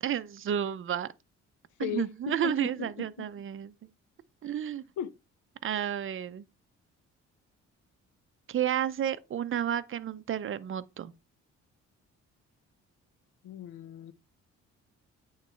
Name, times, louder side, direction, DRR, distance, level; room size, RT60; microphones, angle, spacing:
voice 1, 0.0-1.1 1.8-3.7 4.4-4.8 5.6-6.4 8.5-11.1, right 10 dB, 45° right, 0.6 m, -31 dB
voice 2, 1.8-2.9 5.0-5.1 13.4-14.1, left 11 dB, 75° left, 0.7 m, -36 dB
8.9 x 3.2 x 4.4 m
cardioid pair, 90°, 30 cm